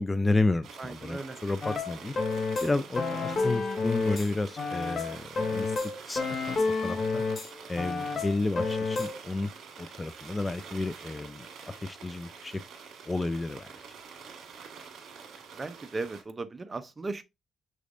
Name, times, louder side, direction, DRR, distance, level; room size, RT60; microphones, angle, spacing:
voice 1, 0.0-2.1 2.6-5.8 6.1-7.2 7.7-9.5 9.8-12.6 13.1-13.7, left 2 dB, 20° left, 0.3 m, -31 dB
sound 1, 0.6-16.2, right 6 dB, 70° right, 1.6 m, -47 dB
voice 2, 0.8-1.4 15.6-17.2, right 3 dB, 25° right, 0.6 m, -36 dB
sound 2, 1.6-4.3 4.6-7.5 7.8-9.1, left 3 dB, 45° left, 1.0 m, -30 dB
6.2 x 3.3 x 2.5 m
cardioid pair, 90°, 0 cm